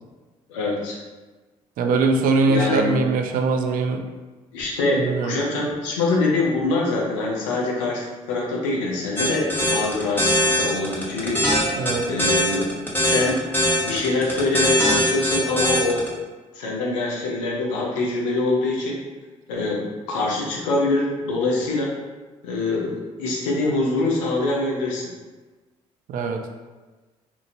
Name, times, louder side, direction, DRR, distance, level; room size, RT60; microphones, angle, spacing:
voice 1, 0.5-1.0 2.4-2.9 4.5-11.4 12.1-12.7 13.0-13.4 13.8-16.0 16.5-19.0 19.5-21.9 22.4-25.1, left 2 dB, 90° left, -2 dB, 0.5 m, -24 dB
voice 2, 1.8-4.0 4.9-5.3 11.8-12.1 26.1-26.5, right 3 dB, 60° right, 5 dB, 0.4 m, -22 dB
sound 1, 9.2-16.1, equal, 15° left, 0.9 m, -21 dB
2.7 x 2.6 x 2.6 m, 1.3 s
hypercardioid pair, 50°, 16 cm